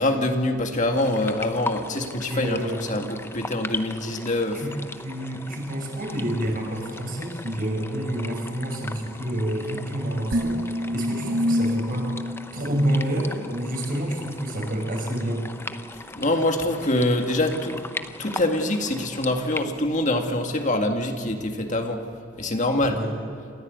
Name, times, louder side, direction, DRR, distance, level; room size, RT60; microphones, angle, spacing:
voice 1, 0.0-4.6 16.1-17.8 18.2-22.0 22.4-23.0, left 1 dB, 40° left, 4 dB, 2.0 m, -25 dB
sound 1, 1.0-19.7, left 2 dB, 15° left, 0.8 m, -39 dB
voice 2, 2.3-2.8 4.5-12.1 12.5-15.5 22.8-23.1, right 1 dB, 50° right, 1 dB, 5.5 m, -28 dB
sound 2, 10.3-13.7, equal, 80° right, 0.9 m, -27 dB
28.0 x 14.5 x 8.1 m, 2.4 s
head